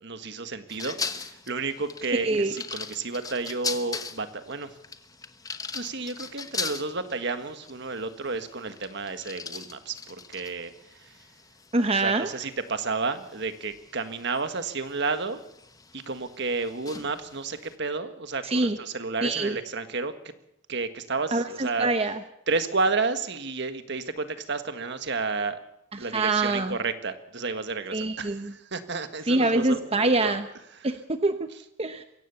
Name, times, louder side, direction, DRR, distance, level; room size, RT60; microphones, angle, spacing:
voice 1, 0.0-4.7 5.7-11.1 11.9-15.4 15.9-20.1 20.7-21.9 22.5-25.6 26.0-30.3 30.7-30.9, right 4 dB, 60° right, 9 dB, 1.7 m, -31 dB
sound 1, 0.7-17.8, left 4 dB, 20° left, 1.1 m, -40 dB
voice 2, 11.7-12.3 18.4-18.8 19.2-19.5 21.3-22.2 26.1-26.8 27.9-28.5 29.3-30.4 30.8-31.5 31.8-32.0, right 2 dB, 30° right, 9 dB, 0.9 m, -25 dB
22.5 x 17.0 x 7.1 m, 0.79 s
head